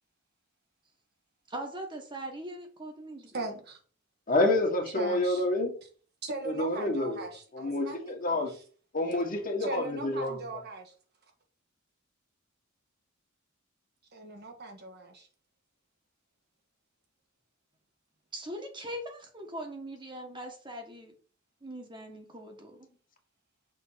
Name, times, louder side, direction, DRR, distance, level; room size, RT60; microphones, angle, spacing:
voice 1, 1.5-3.3 18.3-21.1 21.6-22.9, right 1 dB, 25° right, 1.5 m, -41 dB
voice 2, 3.3-3.8 5.0-5.4 6.2-8.6 9.6-10.9 14.1-15.3, right 2 dB, 55° right, 1.4 m, -39 dB
voice 3, 4.3-5.7 6.5-7.2 7.5-8.5 8.9-10.3, left 2 dB, 45° left, 1.7 m, -28 dB
6.2 x 3.8 x 5.7 m
head